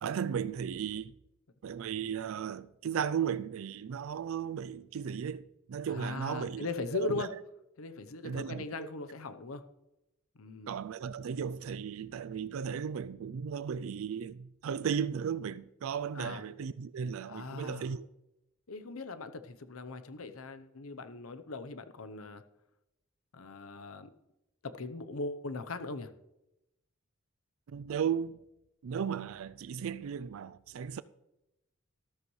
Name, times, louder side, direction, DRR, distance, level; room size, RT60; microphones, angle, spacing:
voice 1, 0.0-1.1 1.6-6.7 6.9-7.3 8.2-8.9 10.7-18.1 27.7-28.4 28.8-31.0, right 7 dB, 75° right, 0.4 m, -35 dB
voice 2, 5.9-7.3 7.8-9.6 10.3-10.8 16.1-16.4 17.3-17.9 18.7-22.4 23.3-24.1 24.6-26.1, left 3 dB, 85° left, 0.8 m, -39 dB
13.5 x 13.0 x 3.2 m
head